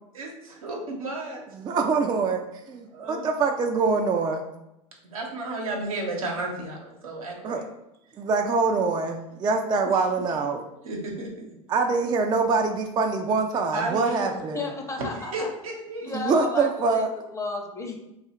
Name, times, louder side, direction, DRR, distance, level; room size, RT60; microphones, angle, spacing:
voice 1, 0.1-1.4 2.9-3.3 5.0-7.7 9.9-10.0 10.8-11.3 13.7-14.5 15.2-16.1, right 2 dB, 90° right, 0 dB, 0.9 m, -33 dB
voice 2, 1.6-4.4 7.4-7.6 8.2-10.6 11.7-14.7 16.1-17.1, right 4 dB, 25° right, 3 dB, 0.3 m, -24 dB
voice 3, 14.3-15.5 16.0-18.0, left 3 dB, 15° left, 3 dB, 0.6 m, -34 dB
2.7 x 2.4 x 4.2 m, 0.88 s
hypercardioid pair, 90°, 17 cm